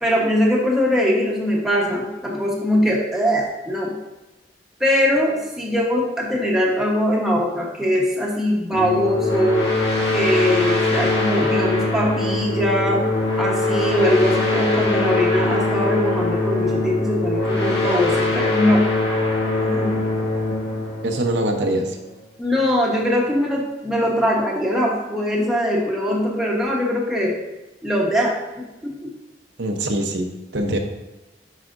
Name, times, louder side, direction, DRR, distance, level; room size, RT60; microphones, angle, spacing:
voice 1, 0.0-4.0 4.8-9.7 10.0-13.0 13.4-18.9 19.6-19.9 22.4-27.4 27.8-28.9, left 1 dB, ahead, -4 dB, 1.1 m, -21 dB
sound 1, 8.7-22.1, left 2 dB, 65° left, 1.8 m, -22 dB
voice 2, 21.0-22.0 29.6-30.8, right 1 dB, 85° right, 3 dB, 0.9 m, -23 dB
10.5 x 4.9 x 2.6 m, 1.0 s
head